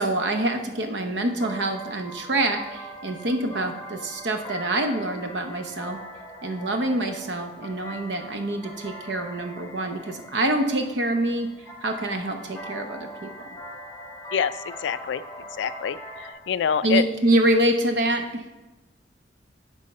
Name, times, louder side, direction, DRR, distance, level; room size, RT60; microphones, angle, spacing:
voice 1, 0.0-6.0 6.4-11.5 11.8-13.3 16.8-18.4, right 1 dB, 70° right, 6 dB, 0.8 m, -25 dB
sound 1, 0.7-16.3, equal, 15° left, 1.7 m, -41 dB
voice 2, 14.8-15.2 15.6-16.0 16.5-17.0, left 8 dB, 80° left, 14 dB, 0.3 m, -24 dB
9.4 x 3.5 x 5.4 m, 1.1 s
head